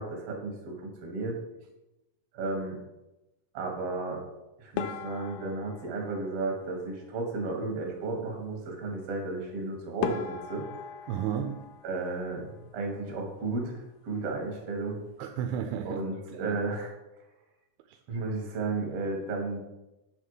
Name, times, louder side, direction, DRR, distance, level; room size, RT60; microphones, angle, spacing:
voice 1, 0.0-1.4 2.3-2.8 3.5-4.2 4.6-10.7 11.8-13.8 14.0-15.0 15.8-16.9 18.1-19.6, right 3 dB, 50° right, 1 dB, 2.2 m, -33 dB
sound 1, 4.8-7.2 9.5-9.6 10.0-12.8 13.0-13.8 14.1-14.3 14.6-14.7 15.4-15.7, left 8 dB, 80° left, 2.4 m, -39 dB
voice 2, 11.1-11.7 15.2-16.1 16.3-16.6 17.9-18.2, right 8 dB, 80° right, 6 dB, 2.3 m, -33 dB
8.4 x 5.8 x 4.8 m, 0.98 s
omnidirectional pair, 4.5 m